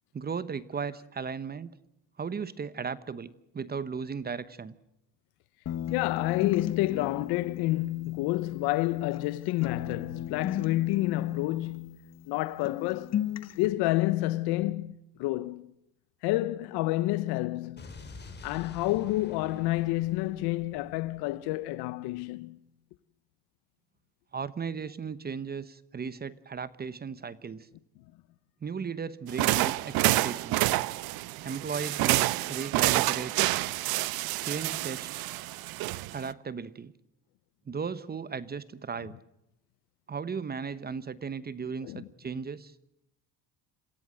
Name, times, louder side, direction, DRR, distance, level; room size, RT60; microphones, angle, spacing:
voice 1, 0.1-1.7 2.2-4.7 24.3-27.7 28.6-30.7 31.4-33.3 34.4-35.3 36.1-36.9 37.7-39.2 40.1-42.7, right 6 dB, 25° right, 1.0 m, -36 dB
sound 1, 5.7-9.3 9.6-12.4 12.6-13.7, left 10 dB, 45° left, 1.2 m, -36 dB
voice 2, 5.9-13.2 13.6-15.7 16.2-17.9 18.4-22.6 41.8-42.0, left 18 dB, 85° left, 0.9 m, -29 dB
Explosion, 17.8-21.8, left 4 dB, 25° left, 4.2 m, -49 dB
sound 2, 29.3-36.3, right 18 dB, 70° right, 0.9 m, -28 dB
27.5 x 16.5 x 7.7 m
cardioid pair, 115°, 38 cm